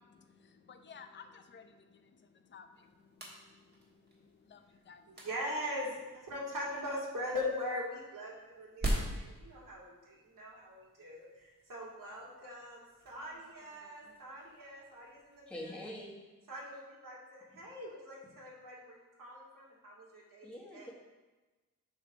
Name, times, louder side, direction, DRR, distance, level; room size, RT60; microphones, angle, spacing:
voice 1, 0.0-5.3, left 6 dB, 35° left, 7 dB, 0.5 m, -57 dB
sound 1, 2.7-15.5, right 1 dB, 30° right, 1.4 m, -44 dB
voice 2, 5.1-16.0 16.5-20.9, left 1 dB, 85° right, -5 dB, 2.3 m, -42 dB
voice 3, 15.5-16.1 20.4-20.9, left 1 dB, 5° left, -4 dB, 1.1 m, -44 dB
8.1 x 3.3 x 5.9 m, 1.2 s
wide cardioid pair, 140°, 32 cm